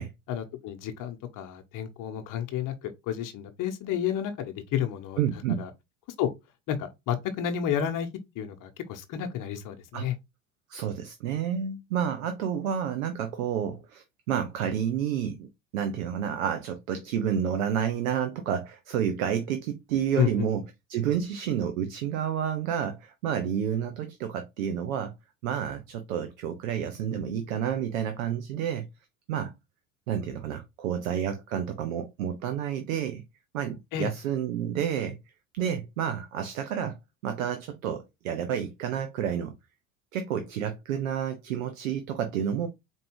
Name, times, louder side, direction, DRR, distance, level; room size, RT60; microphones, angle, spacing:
voice 1, 0.3-5.2 5.6-5.7 6.2-6.3 6.7-8.1 8.3-10.1 20.2-20.5 33.9-34.1, left 9 dB, 50° left, 0.9 m, -31 dB
voice 2, 5.2-5.7 9.9-10.1 10.7-15.5 15.7-20.6 20.9-25.1 25.4-28.9 29.3-29.5 30.1-33.2 33.5-35.2 35.5-37.0 37.2-39.5 40.1-42.7, right 9 dB, 80° right, 0.7 m, -30 dB
4.4 x 2.7 x 2.9 m
hypercardioid pair, 75°, 39 cm